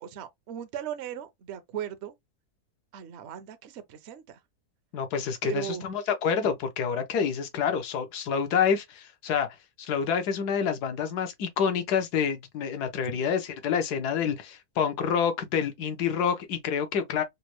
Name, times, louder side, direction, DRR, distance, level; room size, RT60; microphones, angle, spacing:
voice 1, 0.0-2.1 2.9-4.4 5.4-5.9 13.1-13.4, right 10 dB, 60° right, 0.7 m, -38 dB
voice 2, 4.9-9.5 9.8-17.2, left 7 dB, 85° left, 1.4 m, -28 dB
4.1 x 2.1 x 3.0 m
omnidirectional pair, 1.6 m